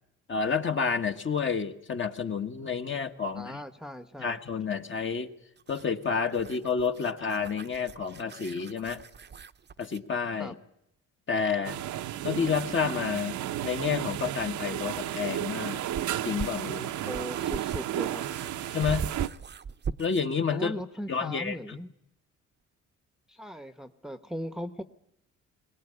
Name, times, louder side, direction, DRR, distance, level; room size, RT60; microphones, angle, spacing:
voice 1, 0.3-3.6 4.2-5.3 5.7-9.0 9.8-10.5 11.3-11.8 12.2-15.8 16.2-16.9 18.7-19.1 20.0-20.8 21.1-21.8, left 6 dB, 40° left, 6 dB, 1.7 m, -30 dB
voice 2, 3.3-4.4 10.4-10.5 17.0-18.2 20.5-21.9 23.3-24.8, equal, ahead, 9 dB, 1.0 m, -38 dB
sound 1, 5.6-10.1 12.4-12.5 14.5-20.3, right 6 dB, 35° right, 0.8 m, -40 dB
sound 2, 11.6-19.3, right 12 dB, 75° right, 0.9 m, -33 dB
21.5 x 19.0 x 10.0 m, 0.82 s
cardioid pair, 90°, 30 cm